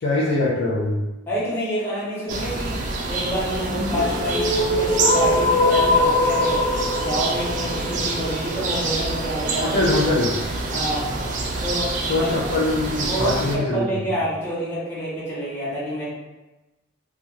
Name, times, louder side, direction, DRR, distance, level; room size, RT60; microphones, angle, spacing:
voice 1, 0.0-1.0 9.6-10.3 12.1-14.0, left 2 dB, 55° left, -6 dB, 0.5 m, -22 dB
voice 2, 1.3-2.8 3.1-6.6 7.0-9.8 10.7-11.0 11.6-12.5 13.1-16.1, equal, 10° left, -10 dB, 0.9 m, -28 dB
sound 1, 2.3-13.6, right 3 dB, 40° right, 0.3 m, -27 dB
sound 2, 3.7-9.7, left 2 dB, 85° left, 1.0 m, -22 dB
2.4 x 2.2 x 3.0 m, 1.1 s
head